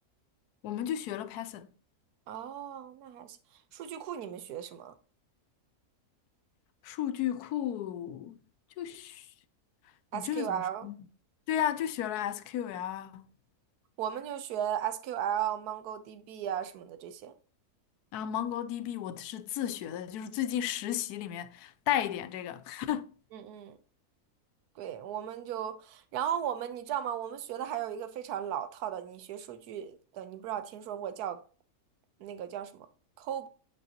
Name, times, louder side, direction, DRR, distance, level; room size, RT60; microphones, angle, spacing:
voice 1, 0.6-1.7 6.8-8.4 8.8-9.3 10.1-10.9 11.5-13.3 18.1-23.1, left 11 dB, 85° left, 1.1 m, -34 dB
voice 2, 2.3-3.4 3.7-4.9 10.1-10.9 14.0-17.3 23.3-23.8 24.8-31.4 32.2-32.9 33.2-33.5, right 10 dB, 80° right, 1.3 m, -36 dB
8.1 x 5.3 x 2.8 m
omnidirectional pair, 1.6 m